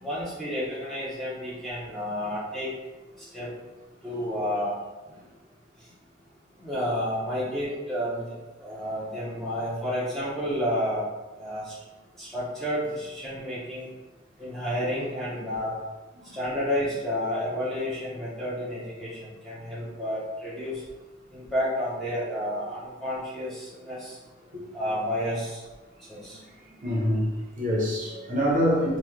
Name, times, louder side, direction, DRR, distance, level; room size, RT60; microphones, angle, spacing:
voice 1, 0.0-2.7 3.3-3.5 4.0-4.7 6.6-8.3 8.6-11.1 11.4-11.7 12.2-13.9 14.4-15.8 16.3-20.8 21.3-24.2 24.7-25.6 26.1-26.4, equal, ahead, -9 dB, 0.7 m, -30 dB
voice 2, 26.7-29.0, equal, 40° right, -5 dB, 0.7 m, -26 dB
2.9 x 2.2 x 3.5 m, 1.2 s
head